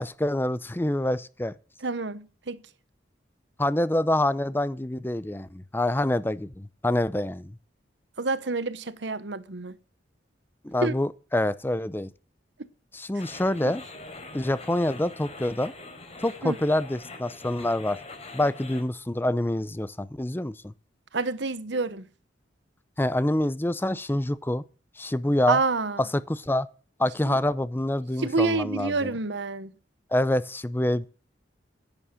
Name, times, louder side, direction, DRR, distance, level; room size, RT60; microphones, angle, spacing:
voice 1, 0.0-1.5 3.6-7.5 10.6-12.1 12.9-13.8 14.3-15.7 16.2-18.0 18.3-20.7 23.0-24.6 25.0-25.6 26.0-26.7 27.0-29.1 30.1-31.1, left 1 dB, 10° left, 0.5 m, -26 dB
voice 2, 1.8-2.6 8.2-9.7 10.8-10.9 13.6-13.7 16.4-16.6 21.1-22.0 25.5-26.0 27.3-27.4 28.2-29.7, right 3 dB, 65° right, 1.0 m, -28 dB
sound 1, 13.2-18.8, left 2 dB, 35° left, 3.7 m, -43 dB
10.5 x 10.0 x 6.2 m
head